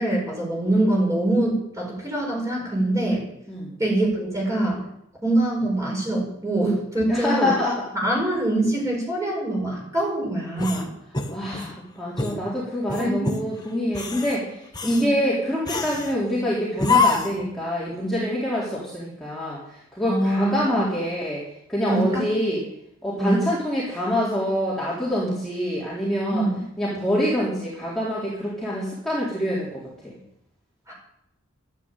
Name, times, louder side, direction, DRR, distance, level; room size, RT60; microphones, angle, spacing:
voice 1, 0.0-3.2 3.8-4.9 5.2-7.5 7.9-10.9 13.0-13.3 14.8-15.1 20.1-20.9 21.9-22.3 23.2-23.4 26.3-26.6 30.9-31.0, right 1 dB, 15° right, -2 dB, 7.8 m, -24 dB
voice 2, 7.1-7.8 11.3-21.4 21.7-22.6 23.0-26.5 26.8-30.1, left 1 dB, ahead, -8 dB, 4.0 m, -26 dB
sound 1, 10.6-11.8 12.2-12.4 12.9-13.4 13.9-14.4 14.7-15.1 15.7-16.1 16.8-17.5, left 4 dB, 20° left, 1.5 m, -25 dB
13.0 x 12.0 x 9.3 m, 0.79 s
head